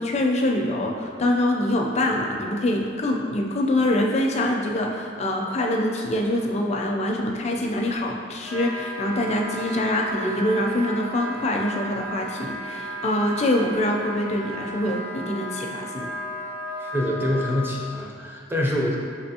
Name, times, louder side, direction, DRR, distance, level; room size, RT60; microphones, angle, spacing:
voice 1, 0.0-16.1, left 1 dB, 35° left, 0 dB, 0.4 m, -24 dB
Wind instrument woodwind instrument, 8.4-17.6, equal, 55° right, 1.1 m, -34 dB
voice 2, 16.8-19.0, left 1 dB, 10° right, -2 dB, 0.5 m, -25 dB
5.5 x 3.4 x 2.8 m, 2.4 s
head